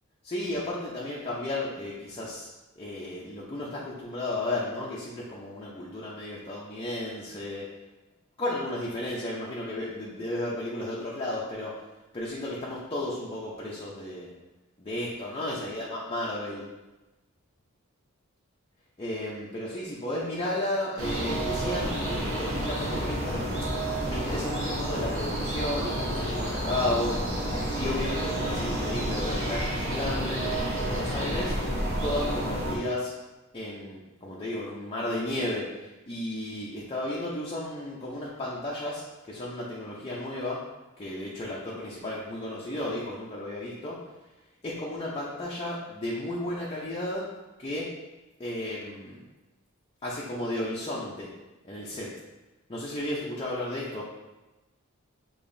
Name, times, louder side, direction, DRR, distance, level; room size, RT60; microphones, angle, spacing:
voice 1, 0.2-2.5 2.8-7.6 8.4-11.8 12.1-14.3 14.8-16.7 19.0-23.5 24.1-27.2 27.8-31.5 32.0-33.1 33.5-40.6 41.0-44.0 44.6-47.3 47.6-47.9 48.4-49.2 50.0-51.3 51.6-52.1 52.7-54.0, left 1 dB, 25° left, -5 dB, 0.6 m, -33 dB
sound 1, 21.0-32.8, right 1 dB, 65° right, 1.3 m, -30 dB
6.7 x 3.0 x 2.6 m, 1.1 s
head